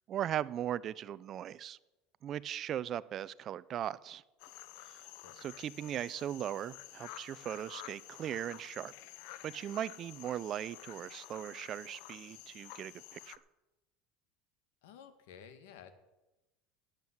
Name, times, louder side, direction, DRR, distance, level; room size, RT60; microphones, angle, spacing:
voice 1, 0.1-1.8 2.2-4.2 4.9-5.0 5.4-8.9 9.4-13.3, right 11 dB, 35° right, 19 dB, 0.5 m, -38 dB
sound 1, 4.4-13.4, left 14 dB, 65° left, 0.7 m, -51 dB
voice 2, 14.8-15.9, left 7 dB, 85° left, 10 dB, 1.6 m, -53 dB
11.0 x 9.0 x 7.9 m, 1.0 s
supercardioid pair, 140°, 0 cm